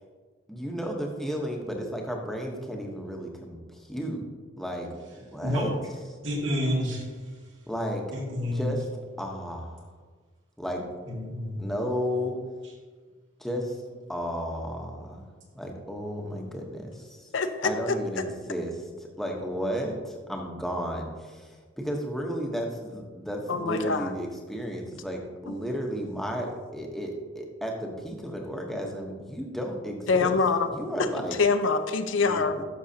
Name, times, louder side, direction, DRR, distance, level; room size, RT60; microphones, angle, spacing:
voice 1, 0.5-4.2 4.6-5.7 7.7-8.0 8.5-8.9 9.2-9.9 10.6-10.9 11.6-12.4 13.4-13.8 14.1-17.3 17.6-30.4 30.7-31.4 32.2-32.6, equal, ahead, 0 dB, 0.9 m, -33 dB
voice 2, 6.2-7.0 8.1-8.7 11.1-11.7, left 1 dB, 75° right, -3 dB, 2.1 m, -29 dB
voice 3, 17.3-18.0 23.5-24.1 25.5-25.6 30.1-30.7 31.0-32.5, left 4 dB, 85° left, 8 dB, 0.6 m, -25 dB
11.5 x 6.4 x 2.8 m, 1.5 s
head